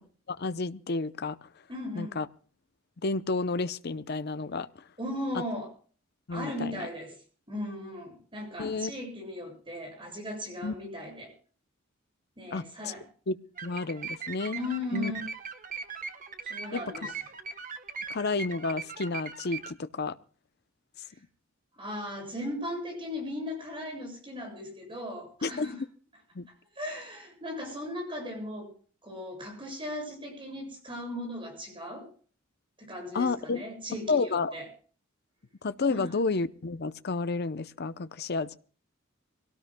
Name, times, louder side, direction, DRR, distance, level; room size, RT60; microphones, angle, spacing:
voice 1, 0.3-1.4 1.9-2.3 3.0-4.7 6.3-6.9 8.6-8.9 10.6-10.7 12.5-12.9 13.3-13.4 13.6-14.6 14.9-15.1 16.7-16.8 18.1-20.2 25.4-25.7 26.3-26.5 33.1-33.6 34.1-34.6 35.6-38.6, left 3 dB, 50° left, 14 dB, 0.7 m, -31 dB
voice 2, 1.7-2.2 5.0-5.7 6.3-7.1 7.5-11.3 12.4-13.0 14.5-15.2 16.4-17.1 21.8-25.8 26.8-28.7 29.0-32.1 32.8-34.7 35.9-36.1, left 1 dB, 25° right, 2 dB, 7.7 m, -37 dB
sound 1, 13.6-19.7, right 5 dB, 40° right, 1.1 m, -40 dB
24.5 x 17.5 x 2.2 m, 0.41 s
head